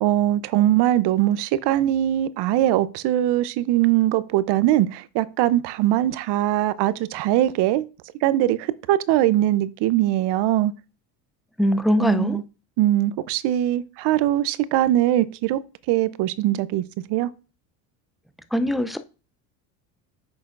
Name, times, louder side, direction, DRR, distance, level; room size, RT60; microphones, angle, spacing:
voice 1, 0.0-7.8 8.2-10.7 12.0-12.4 12.8-15.6 15.9-16.8 17.1-17.3, right 13 dB, 60° right, 0.7 m, -21 dB
voice 2, 11.6-12.4 18.5-19.0, equal, ahead, 0.4 m, -21 dB
8.8 x 6.2 x 2.5 m
supercardioid pair, 95°, 47 cm